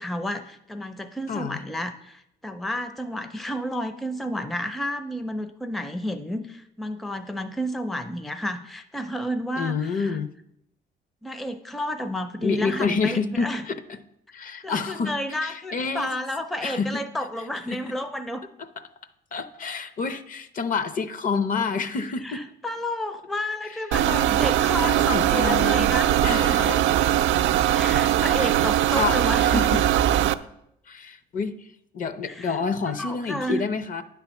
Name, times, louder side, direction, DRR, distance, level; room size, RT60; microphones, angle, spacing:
voice 1, 0.0-10.2 11.2-13.6 14.6-18.4 22.2-26.7 27.7-29.8 32.2-32.6 32.8-33.6, equal, ahead, 9 dB, 0.4 m, -31 dB
voice 2, 1.3-1.6 9.6-10.3 12.4-14.0 14.3-15.1 15.4-16.1 16.6-17.0 17.7-17.9 19.3-22.4 24.0-24.3 24.8-25.8 26.2-26.8 28.4-28.6 28.9-29.8 30.9-31.7 31.9-34.0, left 5 dB, 45° left, 12 dB, 0.7 m, -28 dB
sound 1, 23.9-30.3, right 12 dB, 80° right, 0.4 m, -21 dB
9.9 x 3.5 x 7.0 m, 0.78 s
cardioid pair, 115°, 19 cm